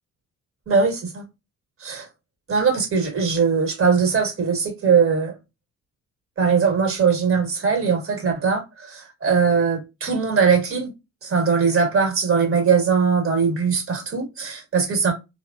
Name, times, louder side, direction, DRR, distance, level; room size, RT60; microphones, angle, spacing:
voice 1, 0.7-1.2 1.8-2.1 2.5-5.3 6.4-10.9 11.2-15.1, right 5 dB, 45° right, 1.3 m, -20 dB
3.1 x 2.1 x 2.4 m
cardioid pair, 90°, 30 cm